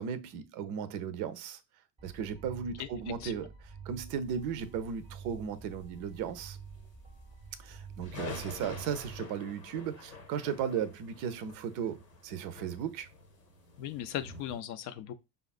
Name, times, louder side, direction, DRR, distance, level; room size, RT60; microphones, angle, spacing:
voice 1, 0.0-1.6 2.0-3.5 3.8-6.6 7.6-13.1, right 7 dB, 40° right, 0.6 m, -36 dB
sound 1, 2.0-9.2, right 5 dB, 15° right, 0.8 m, -49 dB
sound 2, 4.8-6.1 6.3-6.8 7.1-7.2 7.4-14.6, left 1 dB, 90° left, 1.1 m, -47 dB
voice 2, 13.8-15.1, left 11 dB, 40° left, 0.5 m, -38 dB
5.1 x 2.4 x 2.3 m
figure-of-eight pair, 70°, 48 cm